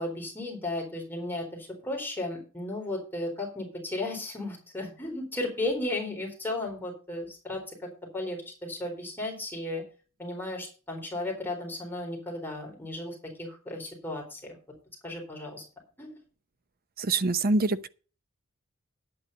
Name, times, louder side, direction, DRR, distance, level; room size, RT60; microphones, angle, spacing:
voice 1, 0.0-9.8 10.2-14.6 15.0-15.6 16.0-16.1, left 2 dB, 10° left, 3.9 m, -35 dB
voice 2, 17.0-17.9, right 3 dB, 45° right, 0.8 m, -25 dB
10.5 x 8.7 x 5.5 m
head